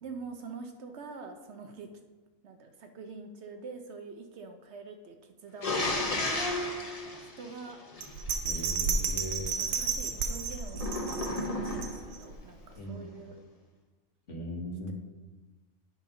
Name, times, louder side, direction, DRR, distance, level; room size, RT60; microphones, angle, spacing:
voice 1, 0.0-1.9 2.4-6.5 7.0-7.8 9.3-13.4, right 4 dB, 65° right, 5 dB, 0.9 m, -45 dB
sound 1, 5.6-8.3 10.7-12.2, left 2 dB, 35° left, 0.8 m, -33 dB
Bell, 8.0-12.3 12.8-12.9, right 5 dB, 85° right, 1.1 m, -32 dB
voice 2, 8.4-9.5 12.8-13.1 14.3-14.9, equal, 65° left, -1 dB, 1.8 m, -38 dB
9.1 x 5.4 x 3.8 m, 1.2 s
omnidirectional pair, 1.4 m